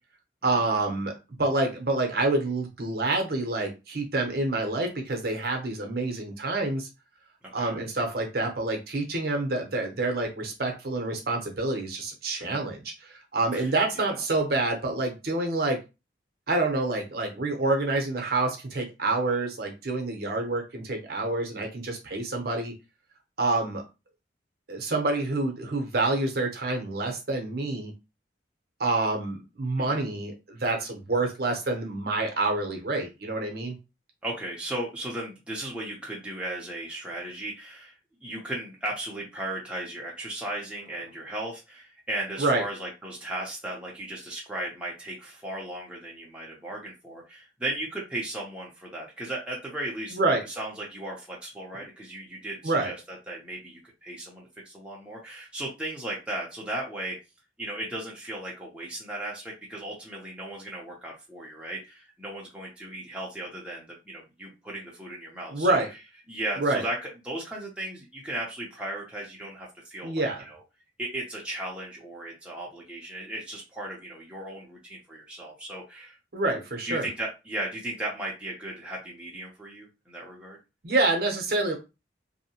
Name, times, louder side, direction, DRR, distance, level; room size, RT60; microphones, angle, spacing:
voice 1, 0.4-1.1 1.4-6.9 7.5-15.8 16.5-22.7 23.4-23.8 24.7-27.9 28.8-33.8 42.4-42.6 50.1-50.4 52.6-52.9 65.5-65.9 66.6-66.8 70.0-70.5 76.3-77.1 80.8-81.8, right 2 dB, 55° right, 3 dB, 0.7 m, -27 dB
voice 2, 7.4-7.8 12.4-12.6 13.5-14.2 29.8-30.0 34.2-50.2 50.5-57.2 57.6-65.8 66.3-70.6 71.0-76.2 76.8-80.6, right 1 dB, 5° right, -4 dB, 0.6 m, -36 dB
2.7 x 2.1 x 2.8 m, 0.27 s
head